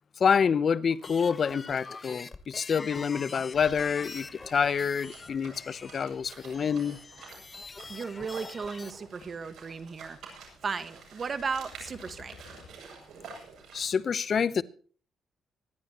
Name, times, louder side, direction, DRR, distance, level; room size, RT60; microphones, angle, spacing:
voice 1, 0.2-7.0 13.7-14.6, left 6 dB, 50° left, 0.8 m, -27 dB
sound 1, 0.9-8.9, left 4 dB, 30° left, 1.1 m, -44 dB
sound 2, 3.5-14.0, right 4 dB, 70° right, 7.7 m, -50 dB
voice 2, 7.9-10.2 10.6-12.4, right 5 dB, 40° right, 1.6 m, -35 dB
sound 3, 8.2-8.3 8.7-8.9 9.2-9.3 11.7-12.7, left 7 dB, 75° left, 2.3 m, -51 dB
25.5 x 11.5 x 3.0 m
cardioid pair, 90°, 0 cm